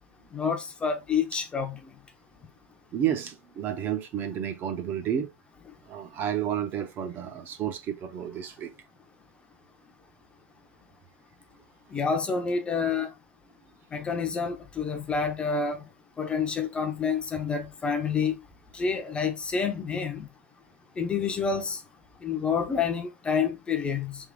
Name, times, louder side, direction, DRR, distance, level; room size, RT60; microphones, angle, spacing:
voice 1, 0.3-1.8 11.9-13.1 13.9-15.8 16.2-18.3 18.7-20.3 21.0-21.8 22.2-24.2, left 5 dB, 15° left, 0.7 m, -28 dB
voice 2, 2.9-5.3 5.9-8.7, right 10 dB, 30° right, 0.7 m, -31 dB
4.1 x 3.6 x 3.6 m
supercardioid pair, 150°, 7 cm